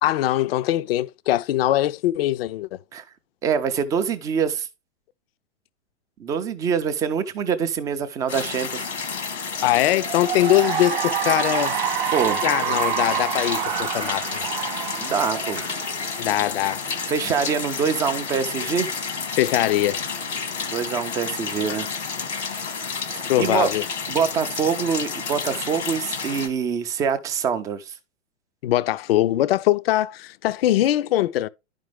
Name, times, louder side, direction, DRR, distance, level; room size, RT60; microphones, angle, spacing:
voice 1, 0.0-2.8 9.6-11.8 12.4-14.5 16.2-16.8 19.4-20.0 23.3-23.8 28.6-31.5, left 14 dB, 55° left, 0.5 m, -22 dB
voice 2, 3.4-4.7 6.2-8.9 12.1-12.4 15.0-15.6 17.1-18.9 20.7-21.9 23.1-23.7 24.1-28.0, right 6 dB, 10° right, 0.3 m, -25 dB
sound 1, 8.3-26.5, left 5 dB, 85° left, 1.6 m, -30 dB
Cheering / Applause, 9.8-16.5, right 11 dB, 50° right, 0.7 m, -27 dB
10.5 x 5.2 x 3.3 m
figure-of-eight pair, 105°, 35 cm